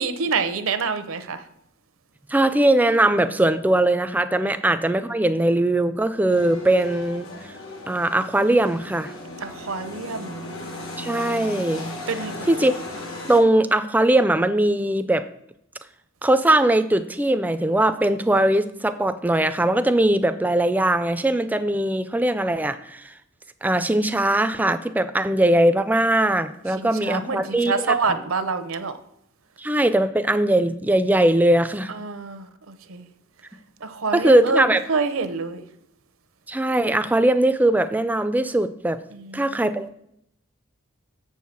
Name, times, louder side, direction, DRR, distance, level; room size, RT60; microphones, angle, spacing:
voice 1, 0.0-1.4 4.4-4.5 9.4-10.5 12.1-12.5 26.8-29.0 31.9-33.1 33.8-35.6 39.1-39.8, right 4 dB, 80° right, 0.7 m, -27 dB
voice 2, 2.3-7.3 7.9-9.1 11.0-11.9 12.5-12.7 13.3-15.2 16.2-23.1 23.6-27.9 29.6-31.9 34.1-34.8 36.5-39.0 39.3-39.9, right 1 dB, 10° right, 0.3 m, -20 dB
sound 1, 6.3-13.4, left 2 dB, 80° left, 1.4 m, -36 dB
7.2 x 4.7 x 6.9 m
head